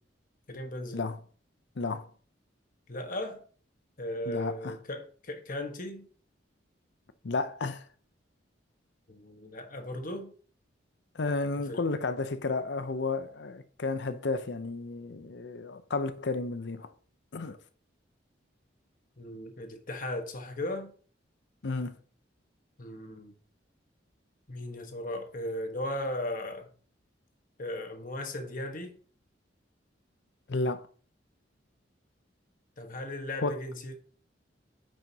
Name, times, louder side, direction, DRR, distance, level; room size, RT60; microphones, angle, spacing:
voice 1, 0.5-1.1 2.9-3.4 4.0-6.1 9.1-10.3 11.7-11.8 19.2-20.9 22.8-23.3 24.5-26.7 27.6-29.0 32.8-34.0, left 1 dB, 50° left, 1.2 m, -37 dB
voice 2, 1.8-2.1 4.3-4.8 7.2-7.9 11.1-16.9 17.3-17.6 21.6-22.0 30.5-30.9 33.4-33.6, left 3 dB, 65° left, 0.6 m, -32 dB
9.1 x 5.0 x 2.8 m
head